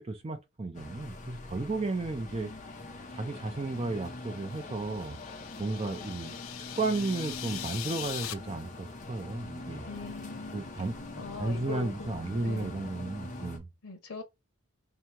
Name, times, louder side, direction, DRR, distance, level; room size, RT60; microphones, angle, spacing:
voice 1, 0.0-2.5 3.1-5.2 5.6-9.9 10.5-13.7, right 2 dB, 25° right, 0.4 m, -34 dB
sound 1, 0.7-13.6, left 2 dB, 35° left, 0.7 m, -43 dB
sound 2, 4.2-8.3, left 12 dB, 70° left, 0.4 m, -42 dB
voice 2, 9.8-10.8 11.2-12.1 12.4-12.8 13.8-14.2, left 4 dB, 85° left, 0.8 m, -41 dB
2.9 x 2.7 x 4.4 m
head